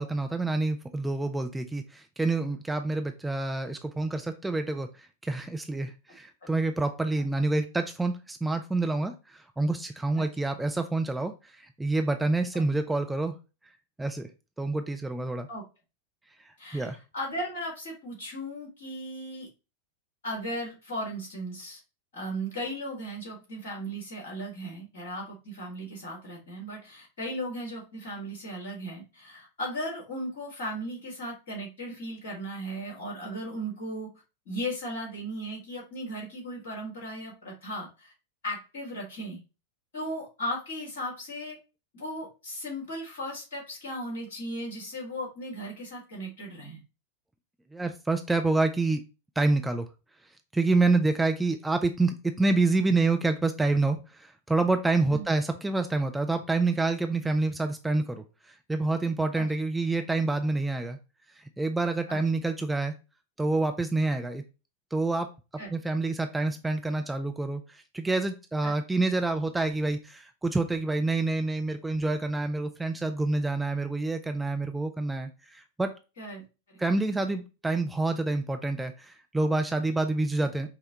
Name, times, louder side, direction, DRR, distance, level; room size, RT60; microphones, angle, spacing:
voice 1, 0.0-13.4 14.0-14.3 14.6-15.5 16.7-17.0 47.7-49.0 49.4-49.9 50.5-61.0 61.4-62.9 63.4-64.4 64.9-65.3 65.7-75.9 76.8-80.7, right 3 dB, 5° right, 6 dB, 0.4 m, -27 dB
voice 2, 16.6-19.5 20.2-21.8 22.1-34.1 34.5-38.1 38.4-39.4 39.9-41.6 41.9-46.8 55.1-55.2 59.4-59.5 62.1-62.2 65.6-65.7 68.6-68.7 76.2-76.4, equal, 60° left, -1 dB, 1.8 m, -36 dB
5.5 x 2.2 x 2.8 m, 0.29 s
figure-of-eight pair, 90°, 0 cm